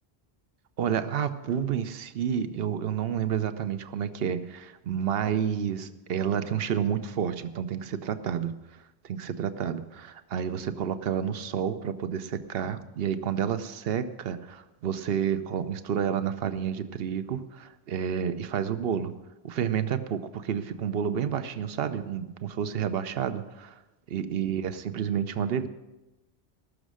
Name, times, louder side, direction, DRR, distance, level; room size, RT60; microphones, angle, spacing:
voice 1, 0.8-8.6 9.0-19.1 19.4-23.8 24.1-25.7, right 8 dB, 65° right, 11 dB, 0.9 m, -30 dB
19.0 x 6.4 x 6.3 m, 1.0 s
omnidirectional pair, 1.1 m